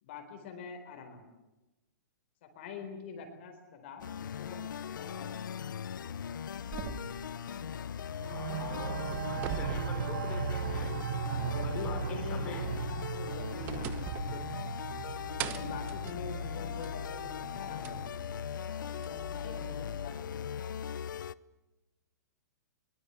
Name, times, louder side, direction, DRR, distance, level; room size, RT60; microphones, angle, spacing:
voice 1, 0.0-1.3 2.5-4.1 4.4-4.6 4.9-5.7 11.2-14.9 15.4-18.0 18.8-20.4 20.9-21.0, left 5 dB, 35° left, 5 dB, 4.3 m, -45 dB
sound 1, 4.0-21.3, left 8 dB, 80° left, 0.9 m, -39 dB
sound 2, 6.7-8.5 8.8-10.8 11.2-11.3 12.9-15.0 15.4-17.1 17.8-17.9 19.0-19.1, right 10 dB, 20° right, 1.0 m, -43 dB
sound 3, 8.2-19.5, right 9 dB, 55° right, 0.8 m, -38 dB
voice 2, 8.3-10.9 11.6-12.6, left 5 dB, 15° left, 0 dB, 4.2 m, -44 dB
23.0 x 23.0 x 8.3 m, 1.0 s
hypercardioid pair, 180°, 10 cm